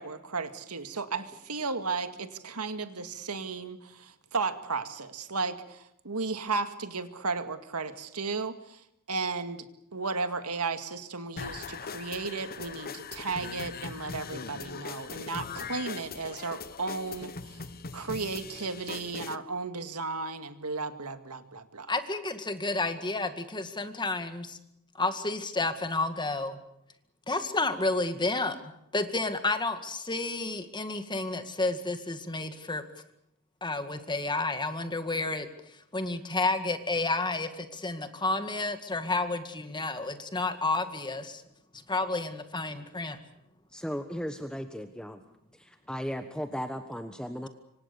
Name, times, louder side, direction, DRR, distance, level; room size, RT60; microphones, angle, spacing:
voice 1, 0.0-21.9, right 4 dB, 90° right, 9 dB, 2.1 m, -34 dB
sound 1, 11.4-19.4, left 5 dB, 45° left, 1.1 m, -40 dB
voice 2, 21.9-24.6 24.9-26.6 27.3-32.8 33.6-35.5 35.9-41.4 41.7-43.2 47.3-47.4, left 2 dB, 20° left, 8 dB, 2.0 m, -31 dB
voice 3, 43.7-45.2 45.5-47.5, equal, 5° left, 7 dB, 1.2 m, -36 dB
27.0 x 25.0 x 7.0 m, 0.80 s
head